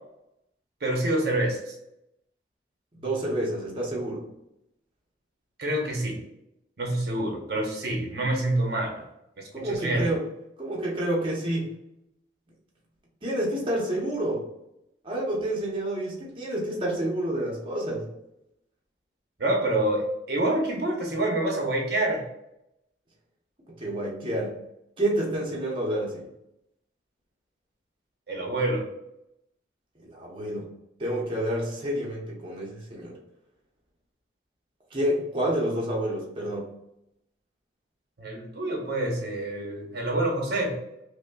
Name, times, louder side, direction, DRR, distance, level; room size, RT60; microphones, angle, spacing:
voice 1, 0.8-1.7 5.6-6.2 6.8-9.0 9.4-10.1 19.4-22.2 28.3-28.9 38.2-40.8, right 1 dB, 60° right, 0 dB, 0.8 m, -27 dB
voice 2, 2.9-4.2 9.5-10.2 10.6-11.7 13.2-14.4 15.0-18.1 23.8-24.6 25.0-26.2 30.0-30.7 31.0-33.2 34.9-36.7, right 1 dB, 30° right, -4 dB, 0.7 m, -29 dB
5.2 x 2.1 x 2.2 m, 0.83 s
head